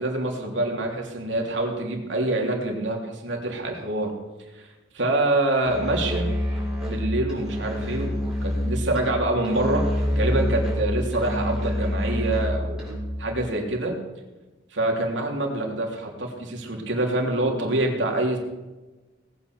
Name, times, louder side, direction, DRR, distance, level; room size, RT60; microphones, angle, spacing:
voice 1, 0.0-4.1 4.5-4.7 4.9-6.3 6.9-9.9 10.1-12.8 13.2-13.9 14.7-18.4, right 2 dB, 75° right, 1 dB, 3.2 m, -26 dB
Musical instrument, 5.6-13.2, equal, 5° right, 6.2 m, -27 dB
19.0 x 9.3 x 6.7 m, 1.2 s
head